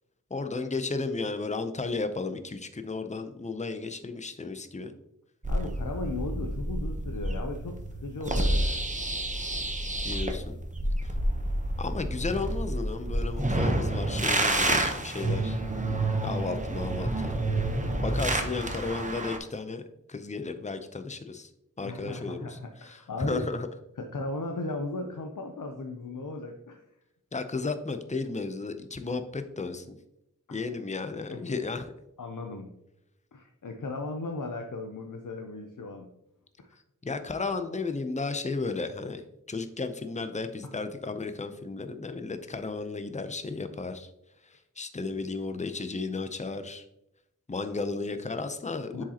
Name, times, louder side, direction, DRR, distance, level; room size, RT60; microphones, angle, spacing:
voice 1, 0.3-4.9 10.0-10.6 11.8-15.6 16.2-17.3 18.0-19.8 20.1-21.5 21.8-22.6 22.8-23.7 27.3-30.0 30.5-31.9 37.0-39.2 39.5-44.1 44.8-46.8 47.5-49.0, left 3 dB, 20° left, 9 dB, 0.5 m, -34 dB
sound 1, 5.4-19.4, right 1 dB, 25° right, 0.8 m, -29 dB
voice 2, 5.5-8.8 21.8-23.5 24.0-26.8 30.5-30.7 31.3-31.4 32.2-32.7 33.3-36.1 36.6-36.8 48.9-49.0, left 2 dB, 75° left, 4 dB, 0.6 m, -37 dB
7.1 x 4.9 x 2.8 m, 0.81 s
wide cardioid pair, 55°, 32 cm